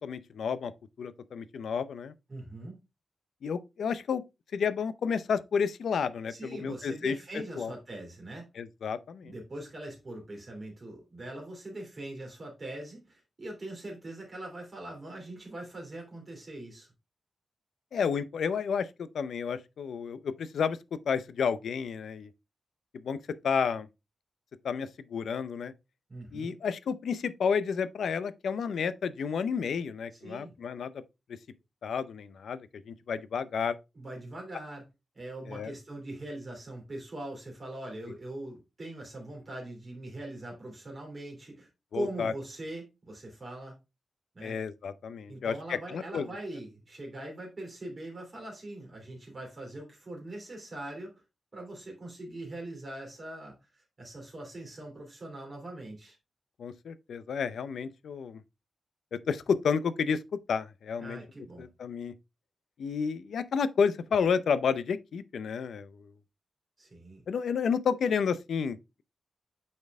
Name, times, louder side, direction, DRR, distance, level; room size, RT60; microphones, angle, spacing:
voice 1, 0.0-0.7 1.0-2.1 3.4-4.2 4.5-7.2 7.6-7.7 8.6-9.3 17.9-22.3 23.0-23.2 23.4-23.9 24.6-25.7 26.3-31.0 31.8-33.8 35.5-35.7 41.9-42.3 44.4-46.3 56.6-58.4 59.1-60.2 60.5-61.2 61.6-62.1 62.8-66.1 67.3-69.0, left 6 dB, 75° left, 0.6 m, -31 dB
voice 2, 2.3-2.7 6.3-8.5 9.2-16.9 26.1-26.6 30.2-30.5 33.9-34.8 35.1-43.8 44.3-44.6 45.3-51.1 51.5-56.2 61.0-61.7 66.8-67.2, right 1 dB, 30° right, 3.0 m, -42 dB
8.4 x 4.4 x 3.4 m
wide cardioid pair, 180°, 0 cm